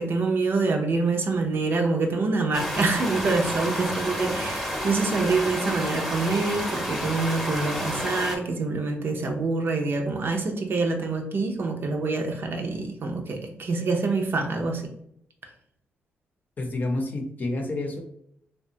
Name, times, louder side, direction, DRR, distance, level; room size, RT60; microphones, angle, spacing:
voice 1, 0.0-14.8, right 3 dB, 55° right, 3 dB, 0.5 m, -26 dB
sound 1, 2.5-8.4, equal, ahead, 0.7 m, -30 dB
voice 2, 16.6-18.0, left 2 dB, 45° left, 3 dB, 0.6 m, -29 dB
2.7 x 2.2 x 2.7 m, 0.72 s
cardioid pair, 70°, 4 cm